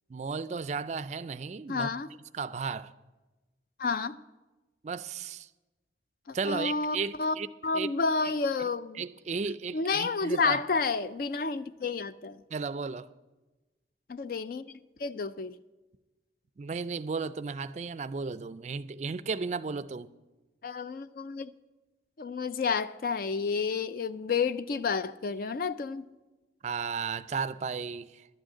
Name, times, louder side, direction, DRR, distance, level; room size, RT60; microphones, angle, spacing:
voice 1, 0.1-1.9 2.3-2.9 4.8-5.5 6.3-7.5 7.7-7.9 9.0-10.6 12.5-13.1 16.6-20.1 26.6-28.3, right 5 dB, 40° right, 0.3 m, -34 dB
voice 2, 1.7-2.1 3.8-4.2 6.3-7.4 7.6-9.0 9.7-12.4 14.1-14.7 15.0-15.6 20.6-21.5 22.2-26.1, left 4 dB, 55° left, 0.4 m, -30 dB
11.5 x 6.3 x 8.4 m
head